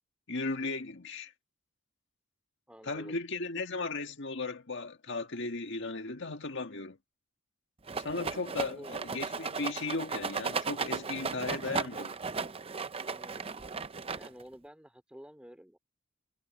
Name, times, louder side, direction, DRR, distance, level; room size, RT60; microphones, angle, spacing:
voice 1, 0.3-1.3 2.8-7.0 8.0-12.2, left 3 dB, 55° left, 1.9 m, -36 dB
voice 2, 2.7-3.2 8.6-8.9 13.2-13.6 14.1-15.8, equal, 5° right, 3.1 m, -50 dB
Rattle, 7.9-14.5, right 5 dB, 25° right, 0.6 m, -36 dB
head